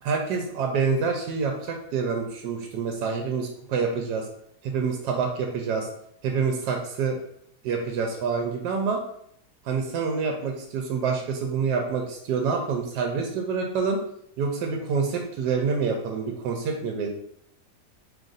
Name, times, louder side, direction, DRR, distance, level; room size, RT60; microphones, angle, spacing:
voice 1, 0.0-4.3 4.6-5.9 6.2-7.2 7.6-9.0 9.6-14.0 14.4-17.1, right 5 dB, 75° right, 2 dB, 1.1 m, -27 dB
3.1 x 2.6 x 3.8 m, 0.70 s
omnidirectional pair, 2.0 m